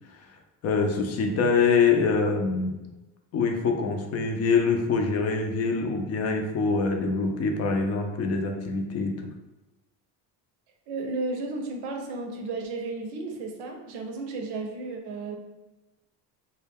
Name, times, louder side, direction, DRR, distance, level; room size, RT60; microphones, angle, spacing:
voice 1, 0.6-2.8 3.3-9.1, left 4 dB, 40° left, 3 dB, 0.5 m, -24 dB
voice 2, 10.9-15.4, right 3 dB, 75° right, 3 dB, 0.7 m, -33 dB
2.2 x 2.2 x 3.4 m, 1.1 s
supercardioid pair, 100°, 41 cm